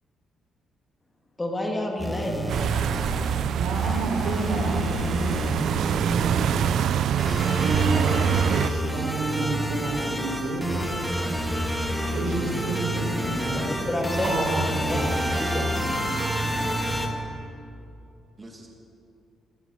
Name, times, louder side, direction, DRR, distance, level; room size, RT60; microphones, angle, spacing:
voice 1, 1.4-3.5 13.5-14.4 14.9-15.0 15.4-15.8, left 1 dB, 15° left, 0 dB, 2.0 m, -30 dB
sound 1, 2.0-17.1, equal, 5° right, 1.8 m, -29 dB
sound 2, 2.5-8.7, right 9 dB, 65° right, 0.3 m, -25 dB
voice 2, 3.6-6.7 7.4-11.2 12.1-13.6 14.2-15.1, right 2 dB, 85° right, 0 dB, 3.8 m, -30 dB
voice 3, 15.1-15.9 18.4-18.7, right 2 dB, 20° right, 1 dB, 1.5 m, -42 dB
14.0 x 11.5 x 7.2 m, 2.7 s
cardioid pair, 135°, 0 cm